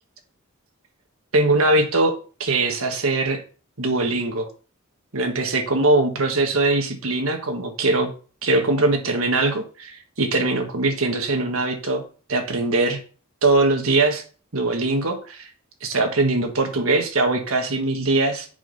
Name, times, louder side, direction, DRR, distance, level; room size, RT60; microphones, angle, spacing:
voice 1, 1.3-2.1 2.4-3.4 3.8-4.5 5.1-8.1 8.4-12.0 12.3-13.0 13.4-14.2 14.5-15.5 15.8-18.5, right 2 dB, 80° right, 4 dB, 1.5 m, -21 dB
7.2 x 5.3 x 4.1 m, 0.38 s
head